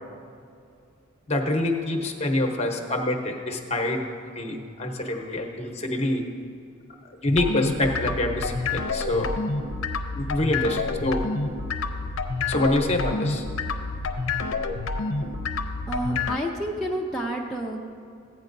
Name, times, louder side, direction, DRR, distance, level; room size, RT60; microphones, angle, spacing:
voice 1, 1.3-4.0 4.4-6.2 7.2-9.3 10.1-11.3 12.5-13.4, left 1 dB, 30° left, 3 dB, 0.9 m, -26 dB
sound 1, 7.3-16.4, left 3 dB, 65° left, 0.6 m, -28 dB
voice 2, 15.9-17.9, equal, ahead, -3 dB, 0.4 m, -29 dB
15.0 x 9.0 x 2.6 m, 2.4 s
head